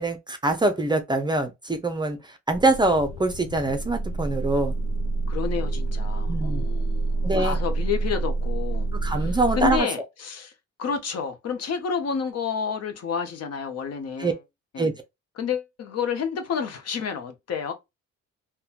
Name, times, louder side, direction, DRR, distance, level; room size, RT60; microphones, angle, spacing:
voice 1, 0.0-2.2 2.5-4.7 6.3-6.7 7.2-7.6 9.0-9.9 14.2-14.3 14.8-14.9, right 2 dB, 15° right, 0.5 m, -24 dB
sound 1, 2.5-9.8, right 3 dB, 90° left, 0.5 m, -27 dB
voice 2, 5.3-10.5 10.8-14.4 14.7-14.9 15.4-17.7, left 6 dB, 55° left, 0.7 m, -30 dB
3.0 x 2.2 x 2.3 m
cardioid pair, 90°, 30 cm